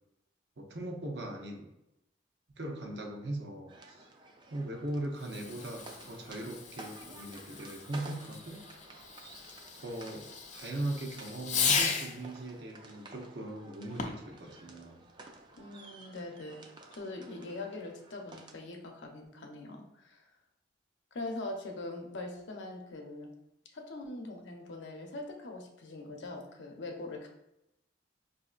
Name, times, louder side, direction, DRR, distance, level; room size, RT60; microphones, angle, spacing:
voice 1, 0.6-1.7 2.6-4.1 4.5-8.7 9.8-10.3 10.5-15.0, right 1 dB, 65° right, 2 dB, 0.7 m, -39 dB
sound 1, 3.7-18.5, right 3 dB, 25° right, 0.3 m, -53 dB
Fireworks, 5.2-12.3 13.9-14.4, left 5 dB, 40° left, 0.4 m, -36 dB
voice 2, 15.6-16.7 16.9-20.3 21.1-23.3 23.7-27.3, left 2 dB, 80° left, 2 dB, 0.7 m, -42 dB
5.1 x 2.6 x 2.4 m, 0.87 s
head